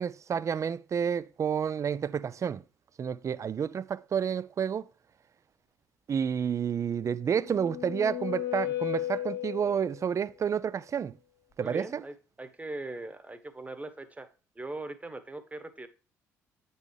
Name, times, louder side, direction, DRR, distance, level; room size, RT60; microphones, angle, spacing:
voice 1, 0.0-2.6 3.0-4.9 6.1-11.1 11.6-12.0, right 7 dB, 40° right, 0.4 m, -30 dB
sound 1, 7.0-10.1, left 13 dB, 55° left, 1.3 m, -35 dB
voice 2, 11.6-14.3 14.5-15.9, right 2 dB, 20° right, 1.1 m, -40 dB
8.3 x 5.5 x 3.3 m
hypercardioid pair, 55°, 8 cm